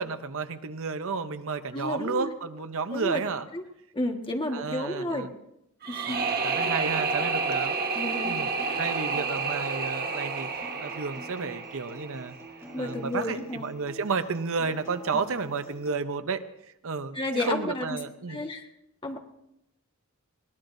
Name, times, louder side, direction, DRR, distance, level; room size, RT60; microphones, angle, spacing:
voice 1, 0.0-3.5 4.5-5.3 6.1-8.5 8.8-10.5 10.8-12.3 12.8-16.4 16.8-18.4, right 4 dB, 65° right, 10 dB, 0.8 m, -32 dB
voice 2, 1.7-2.3 2.9-3.2 3.5-3.6 3.9-5.3 5.9-6.2 7.9-8.8 12.7-13.6 17.1-18.0 18.3-18.7 19.0-19.2, left 1 dB, 25° left, 2 dB, 1.5 m, -32 dB
sound 1, 5.8-12.8, right 4 dB, 45° right, 1.4 m, -30 dB
Acoustic guitar, 7.9-15.9, right 1 dB, 15° right, 4.7 m, -47 dB
22.0 x 17.5 x 2.7 m, 0.81 s
head